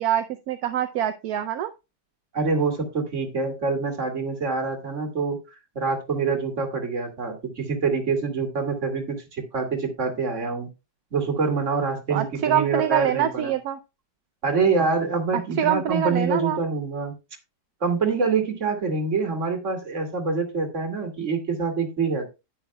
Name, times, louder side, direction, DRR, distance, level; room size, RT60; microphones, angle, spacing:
voice 1, 0.0-1.7 12.1-13.8 15.3-16.6, right 10 dB, 70° right, 8 dB, 1.0 m, -25 dB
voice 2, 2.3-5.4 5.8-10.7 11.1-13.5 14.4-17.2 17.8-22.3, right 4 dB, 45° right, 4 dB, 2.2 m, -25 dB
10.0 x 9.5 x 2.2 m, 0.25 s
omnidirectional pair, 1.9 m